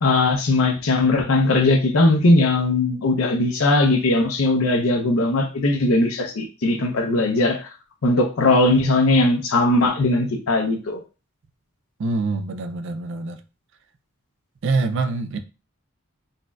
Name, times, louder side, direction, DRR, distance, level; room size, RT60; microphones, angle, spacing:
voice 1, 0.0-7.7 8.0-11.0, left 2 dB, 75° left, 0.6 m, -19 dB
voice 2, 12.0-13.4 14.6-15.4, right 3 dB, 55° right, 0.4 m, -25 dB
4.0 x 2.5 x 2.3 m
head